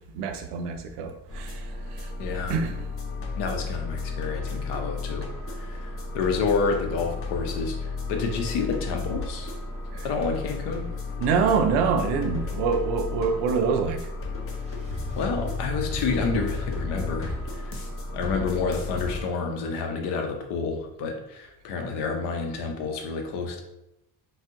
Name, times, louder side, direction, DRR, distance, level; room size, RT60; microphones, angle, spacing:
voice 1, 0.1-1.7 1.9-2.1 2.5-2.8 9.9-10.1 11.2-14.0, right 5 dB, 85° right, 5 dB, 0.6 m, -25 dB
sound 1, 1.3-19.2, left 4 dB, 35° left, 0.6 m, -33 dB
voice 2, 2.2-2.6 3.4-5.3 5.6-9.5 10.0-10.9 15.2-17.7 18.1-23.6, left 4 dB, 85° left, 4 dB, 0.7 m, -29 dB
sound 2, 14.5-17.3, equal, 15° right, 0.7 m, -36 dB
2.6 x 2.1 x 3.6 m, 0.88 s
cardioid pair, 95°, 40 cm